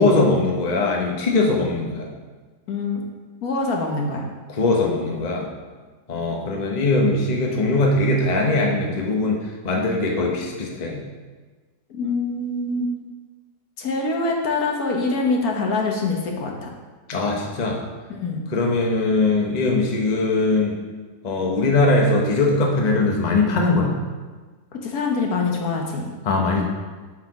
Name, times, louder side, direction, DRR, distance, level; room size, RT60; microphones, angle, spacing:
voice 1, 0.0-2.1 4.5-5.5 6.1-11.0 17.1-17.8 18.5-20.8 21.2-23.9 26.2-26.6, left 2 dB, 30° left, 0 dB, 0.9 m, -21 dB
voice 2, 2.7-3.0 3.4-4.3 11.9-12.9 13.8-16.7 18.1-18.4 24.7-26.1, left 3 dB, 65° left, 1 dB, 1.5 m, -24 dB
7.8 x 4.7 x 4.9 m, 1.4 s
omnidirectional pair, 1.7 m